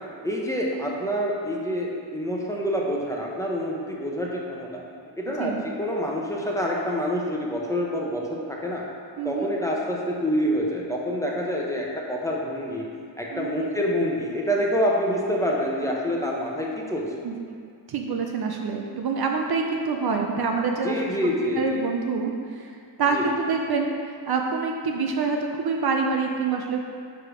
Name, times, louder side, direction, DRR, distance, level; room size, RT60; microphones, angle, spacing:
voice 1, 0.2-4.8 5.2-8.8 9.2-12.9 13.2-17.2 20.8-21.8 23.1-23.3, equal, 5° left, -3 dB, 0.9 m, -27 dB
voice 2, 9.2-9.5 13.3-13.7 17.2-17.4 17.9-21.2 21.5-26.9, right 4 dB, 50° right, 2 dB, 0.6 m, -26 dB
5.1 x 4.7 x 5.0 m, 2.2 s
cardioid pair, 85°, 47 cm